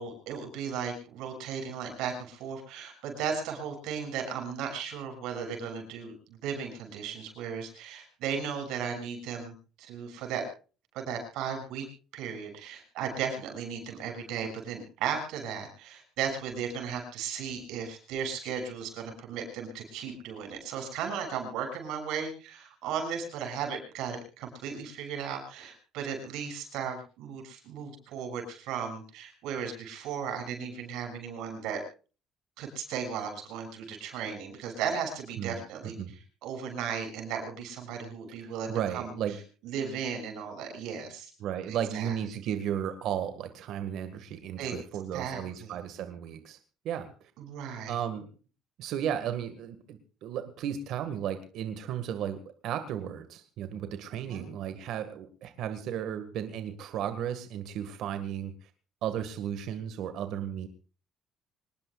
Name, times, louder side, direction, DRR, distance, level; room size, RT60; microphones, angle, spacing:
voice 1, 0.0-6.1 6.4-9.5 9.8-10.4 10.9-11.9 12.1-31.8 32.6-36.0 36.4-39.1 39.6-41.3 41.7-42.1 44.6-44.7 45.1-45.7 47.5-47.9 54.3-54.4, right 7 dB, 85° right, 4 dB, 6.6 m, -36 dB
voice 2, 35.4-36.1 38.4-39.4 41.4-46.6 46.8-47.3 47.9-48.3 48.8-58.7 59.0-60.7, right 9 dB, 65° right, 9 dB, 1.9 m, -34 dB
25.5 x 20.0 x 2.5 m, 0.37 s
cardioid pair, 150°, 0 cm